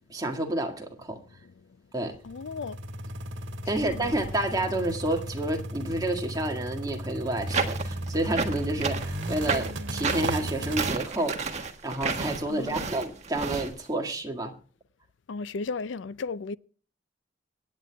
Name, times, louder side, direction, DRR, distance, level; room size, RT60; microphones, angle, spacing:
voice 1, 0.1-1.2 1.9-2.1 3.7-14.5, right 1 dB, 20° right, 1.8 m, -30 dB
sound 1, 2.1-10.9, right 1 dB, 80° right, 1.6 m, -35 dB
voice 2, 2.2-2.8 3.7-4.2 12.5-13.0 15.3-16.6, left 4 dB, 80° left, 0.5 m, -35 dB
sound 2, 7.5-13.7, right 4 dB, 40° right, 1.4 m, -30 dB
25.0 x 9.5 x 2.3 m
head